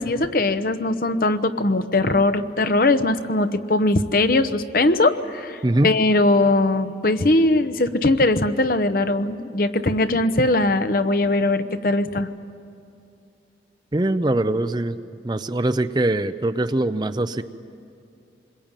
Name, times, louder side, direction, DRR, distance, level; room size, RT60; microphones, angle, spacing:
voice 1, 0.0-12.3, left 2 dB, 50° left, 10 dB, 0.9 m, -20 dB
voice 2, 13.9-15.0 15.2-17.4, right 1 dB, 25° right, 11 dB, 0.6 m, -22 dB
26.5 x 22.0 x 9.0 m, 2.6 s
head